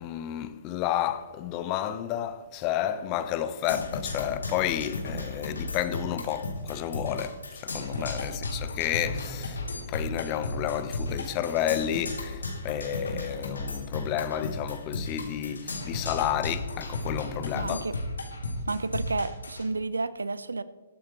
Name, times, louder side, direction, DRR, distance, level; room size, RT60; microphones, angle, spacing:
voice 1, 0.0-9.6 9.9-17.9, left 11 dB, 30° left, 0.9 m, -31 dB
Percussion, 3.7-19.7, left 2 dB, 80° left, 3.1 m, -35 dB
voice 2, 17.5-18.0 18.7-20.6, right 3 dB, 80° right, 0.7 m, -31 dB
21.5 x 8.9 x 3.1 m
figure-of-eight pair, 130°, 0 cm